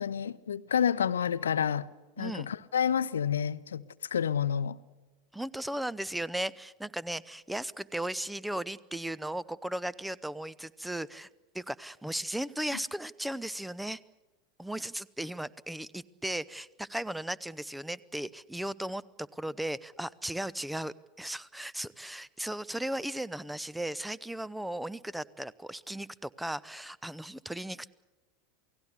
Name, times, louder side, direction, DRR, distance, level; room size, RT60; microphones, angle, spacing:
voice 1, 0.0-1.9 2.2-4.8 12.7-12.8, left 8 dB, 70° left, 0.8 m, -29 dB
voice 2, 2.2-2.5 5.3-11.3 11.5-14.0 14.6-27.9, right 1 dB, 5° right, 0.7 m, -36 dB
28.5 x 18.5 x 8.2 m
figure-of-eight pair, 80°, 0 cm